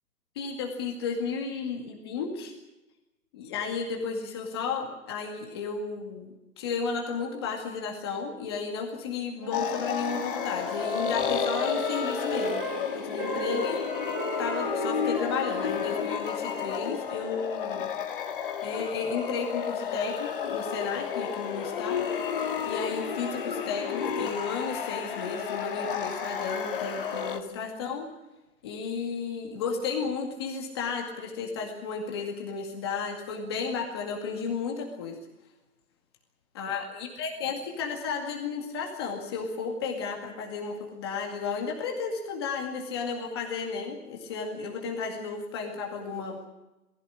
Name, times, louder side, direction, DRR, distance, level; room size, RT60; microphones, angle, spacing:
voice 1, 0.4-2.5 3.3-6.3 6.6-12.6 12.9-13.8 14.4-17.9 18.6-22.0 22.7-28.1 28.6-35.2 36.5-46.4, left 5 dB, 15° left, 0 dB, 2.1 m, -33 dB
Wind instrument woodwind instrument, 9.3-12.8 13.2-17.4, right 2 dB, 30° right, 4.5 m, -37 dB
sound 1, 9.5-27.4, left 7 dB, 35° left, 2.1 m, -32 dB
23.0 x 15.5 x 9.9 m, 1.0 s
hypercardioid pair, 175°, 47 cm